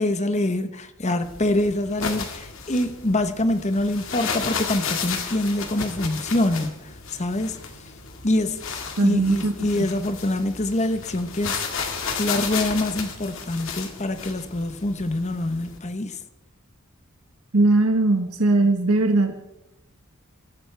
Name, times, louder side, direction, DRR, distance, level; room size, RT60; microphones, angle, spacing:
voice 1, 0.0-7.6 8.2-8.6 9.0-11.6 12.1-16.2, left 1 dB, 30° left, 1.0 m, -25 dB
sound 1, 1.2-15.8, left 5 dB, 65° left, 2.1 m, -33 dB
voice 2, 9.0-9.8 17.5-19.3, right 2 dB, 85° right, 1.4 m, -20 dB
24.5 x 14.0 x 3.4 m
head